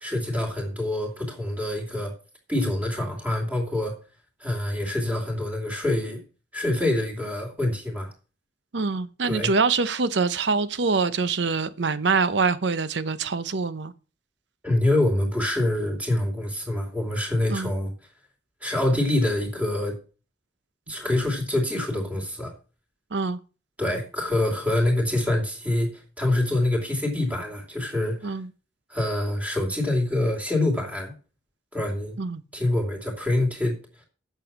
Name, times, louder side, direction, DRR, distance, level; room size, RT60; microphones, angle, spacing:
voice 1, 0.0-2.1 2.5-4.0 4.4-6.2 6.5-8.1 9.2-9.5 14.6-17.9 18.6-19.9 20.9-22.5 23.8-28.3 28.9-31.1 31.7-32.2 32.5-33.8, left 1 dB, 10° right, 2.7 m, -25 dB
voice 2, 8.7-13.9 17.5-17.7 23.1-23.4 28.2-28.5 32.2-32.4, right 4 dB, 80° right, 0.8 m, -24 dB
9.0 x 7.0 x 6.0 m
head